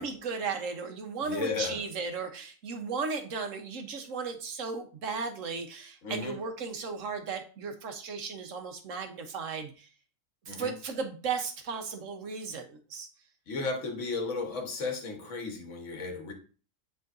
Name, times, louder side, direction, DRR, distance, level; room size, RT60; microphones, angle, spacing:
voice 1, 0.0-9.9 10.5-13.1, right 5 dB, 70° right, 5 dB, 1.3 m, -35 dB
voice 2, 1.2-1.8 6.0-6.4 10.5-10.7 13.5-16.3, left 4 dB, 65° left, 3 dB, 1.6 m, -34 dB
10.0 x 3.8 x 2.6 m, 0.38 s
omnidirectional pair, 1.4 m